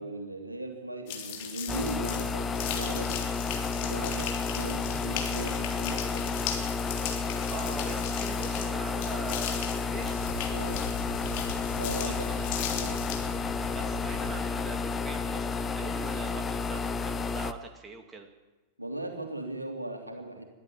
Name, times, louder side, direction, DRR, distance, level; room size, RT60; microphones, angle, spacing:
voice 1, 0.0-3.2 3.8-4.3 4.6-6.4 10.5-10.9 11.8-12.1 12.7-13.0 18.8-20.4, right 1 dB, 85° right, 4 dB, 3.0 m, -38 dB
sound 1, 1.1-13.3, left 8 dB, 45° left, 3.4 m, -38 dB
sound 2, 1.7-17.5, left 4 dB, 20° left, 0.9 m, -31 dB
voice 2, 7.3-10.3 11.9-12.4 13.7-18.3, right 4 dB, 15° right, 4 dB, 2.4 m, -43 dB
sound 3, 9.9-14.8, left 5 dB, 60° left, 2.9 m, -42 dB
22.0 x 14.0 x 8.7 m, 1.2 s
figure-of-eight pair, 95°, 0 cm